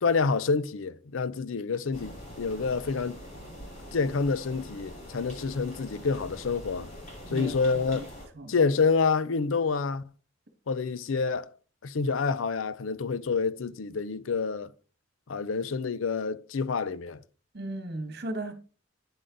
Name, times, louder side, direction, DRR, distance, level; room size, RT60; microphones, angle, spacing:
voice 1, 0.0-3.2 3.9-6.9 7.3-8.1 8.5-10.0 10.7-11.5 11.8-14.7 15.3-17.2, left 4 dB, 85° left, 0.5 m, -28 dB
sound 1, 1.9-8.3, equal, 40° left, 6.2 m, -44 dB
voice 2, 17.5-18.5, right 1 dB, 55° right, 1.7 m, -35 dB
9.8 x 7.7 x 3.9 m
head